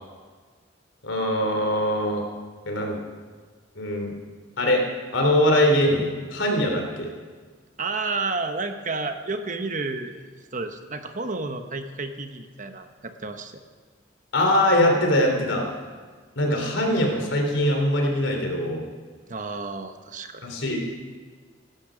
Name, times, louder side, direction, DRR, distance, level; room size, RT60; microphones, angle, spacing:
voice 1, 1.0-2.2 2.6-3.0 3.7-4.1 4.6-4.8 5.1-7.1 14.3-15.7 16.4-18.9 20.4-20.8, left 1 dB, 90° left, 2 dB, 3.2 m, -22 dB
voice 2, 7.8-13.6 19.3-20.4, right 3 dB, 45° right, 7 dB, 1.1 m, -31 dB
17.0 x 12.5 x 5.1 m, 1.5 s
head